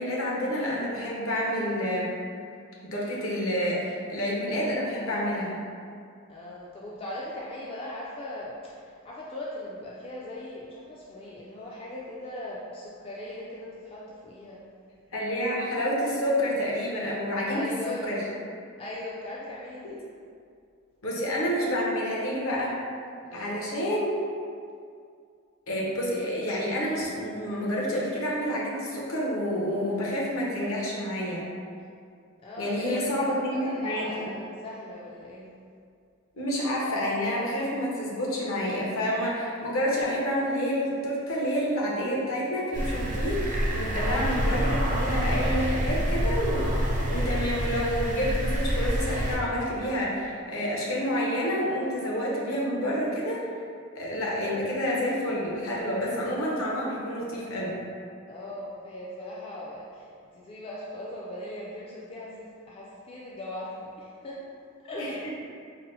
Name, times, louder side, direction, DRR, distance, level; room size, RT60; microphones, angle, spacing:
voice 1, 0.0-2.1 2.9-5.6 15.1-18.2 21.0-22.8 23.3-24.1 25.7-31.4 32.6-34.1 36.3-53.4 53.9-57.8 65.0-65.3, equal, 65° left, -4 dB, 0.8 m, -29 dB
voice 2, 6.3-14.6 17.5-18.1 18.8-20.0 23.2-23.6 32.4-35.5 44.0-44.2 58.3-60.1 60.3-64.4 64.8-65.2, left 1 dB, 25° left, -5 dB, 0.3 m, -39 dB
sound 1, 42.7-49.4, equal, 35° right, 0.5 m, -27 dB
4.0 x 2.0 x 4.0 m, 2.3 s
head